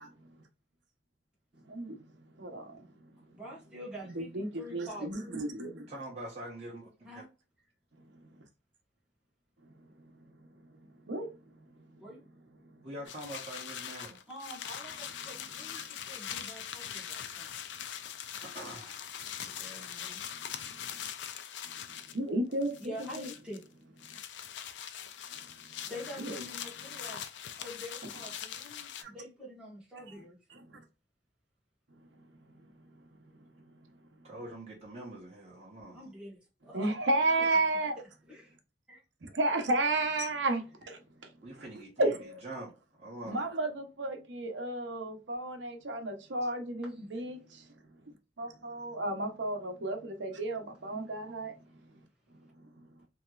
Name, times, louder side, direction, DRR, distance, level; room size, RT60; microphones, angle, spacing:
voice 1, 1.7-2.0 2.4-2.9 4.1-5.9 10.8-11.3 11.7-11.8 12.7-12.9 21.0-21.1 22.1-23.3 26.2-26.4 29.0-29.1 30.1-30.2 30.5-30.8 36.7-38.0 39.2-41.0 41.6-41.7 42.0-42.4 43.2-47.7 48.1-51.6 52.0-52.1 52.6-52.8, right 2 dB, 85° right, 0.8 m, -33 dB
voice 2, 3.3-5.3 7.0-7.3 12.0-12.2 14.3-17.5 19.7-20.2 22.8-23.6 25.9-30.4 35.9-36.9 37.8-37.9 38.3-38.5 38.9-39.0, equal, 5° right, 1.3 m, -46 dB
voice 3, 5.9-7.2 12.8-14.2 18.4-19.1 19.4-20.3 34.2-36.0 41.4-42.1 42.4-43.5, right 1 dB, 35° right, 0.9 m, -45 dB
sound 1, 13.1-22.2 22.5-23.7 24.0-29.0, left 9 dB, 75° left, 0.4 m, -42 dB
3.1 x 2.8 x 2.3 m
head